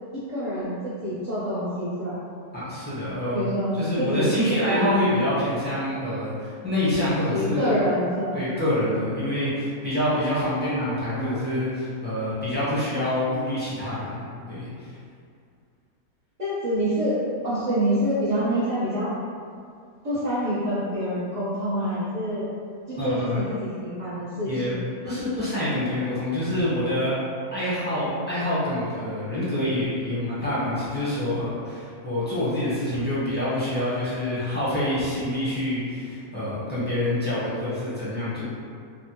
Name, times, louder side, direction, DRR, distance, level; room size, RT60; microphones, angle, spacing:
voice 1, 0.3-2.2 3.3-5.0 7.3-8.4 10.6-11.4 16.4-17.2 17.4-19.1 20.0-22.5 22.9-24.7, equal, 40° right, -13 dB, 0.6 m, -27 dB
voice 2, 2.5-3.4 3.8-7.7 8.3-14.9 23.0-23.4 24.4-24.7 25.0-27.2 27.5-38.4, left 1 dB, 10° left, -12 dB, 0.6 m, -26 dB
3.3 x 2.1 x 2.8 m, 2.3 s
omnidirectional pair, 1.5 m